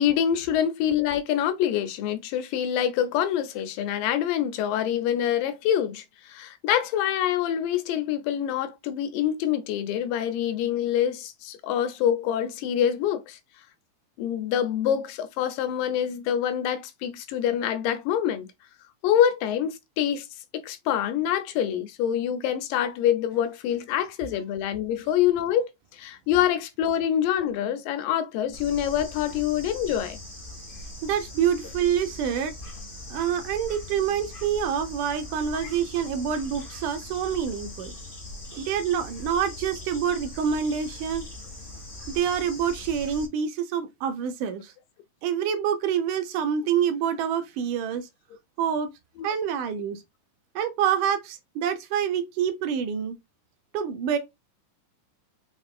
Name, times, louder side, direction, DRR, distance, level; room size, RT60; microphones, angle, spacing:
voice 1, 0.0-13.4 14.2-18.5 19.0-20.3 20.5-30.2 35.6-35.7, left 10 dB, 85° left, 2.4 m, -26 dB
Bird / Insect, 28.5-43.3, left 1 dB, 30° left, 1.0 m, -41 dB
voice 2, 31.0-32.5 33.1-37.9 38.5-41.3 42.2-44.7 45.2-48.1 48.6-48.9 49.2-50.0 50.6-53.2 53.7-54.2, right 8 dB, 75° right, 2.2 m, -27 dB
5.6 x 3.4 x 2.4 m
omnidirectional pair, 3.8 m